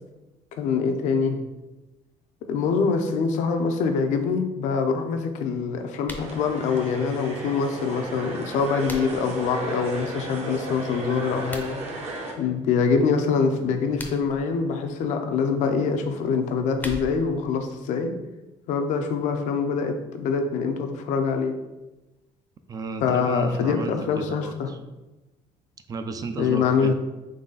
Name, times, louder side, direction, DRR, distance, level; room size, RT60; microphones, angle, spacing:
voice 1, 0.5-1.4 2.5-11.8 12.4-18.1 18.7-21.5 23.0-24.7 26.4-26.9, left 5 dB, 75° left, 5 dB, 0.6 m, -24 dB
sound 1, 6.0-6.3 8.4-9.3 11.4-11.7 13.8-14.4 16.4-17.4, left 1 dB, 15° left, 0.6 m, -39 dB
sound 2, 6.2-12.3, right 2 dB, 60° right, 1.0 m, -35 dB
voice 2, 22.7-24.8 25.9-26.9, right 3 dB, 30° right, 8 dB, 0.3 m, -33 dB
4.0 x 3.1 x 3.9 m, 1.1 s
cardioid pair, 125°, 13 cm